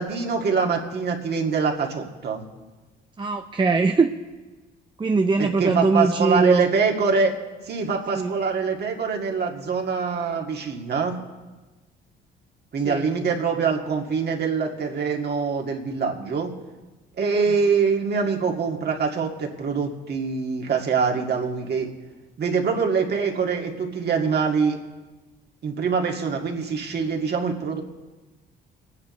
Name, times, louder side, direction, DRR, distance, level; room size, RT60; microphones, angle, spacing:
voice 1, 0.0-2.4 5.4-7.3 7.6-11.2 12.7-16.5 17.2-21.9 22.4-24.8 25.6-27.8, right 5 dB, 55° right, 1 dB, 2.2 m, -24 dB
voice 2, 3.2-4.1 5.0-6.6 8.1-8.3 12.8-13.0, right 4 dB, 25° right, 4 dB, 0.7 m, -21 dB
28.0 x 9.7 x 3.2 m, 1.2 s
supercardioid pair, 65°, 21 cm